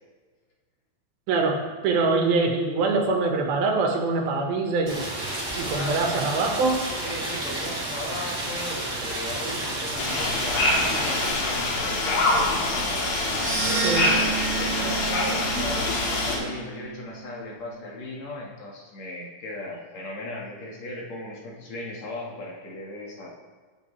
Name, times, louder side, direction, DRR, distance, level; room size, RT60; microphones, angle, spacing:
voice 1, 1.3-1.6 1.8-5.0 5.6-6.8 13.8-14.1, right 3 dB, 85° right, 2 dB, 3.4 m, -24 dB
Rain, 4.9-11.3, right 1 dB, 30° right, 3.6 m, -31 dB
voice 2, 5.7-6.1 7.0-12.9 13.6-23.3, left 2 dB, 55° left, -3 dB, 3.0 m, -37 dB
sound 1, 10.0-16.4, left 2 dB, 80° left, 4.1 m, -25 dB
sound 2, 13.3-17.6, right 6 dB, 60° right, 2.8 m, -32 dB
19.0 x 8.7 x 3.4 m, 1.4 s
omnidirectional pair, 4.1 m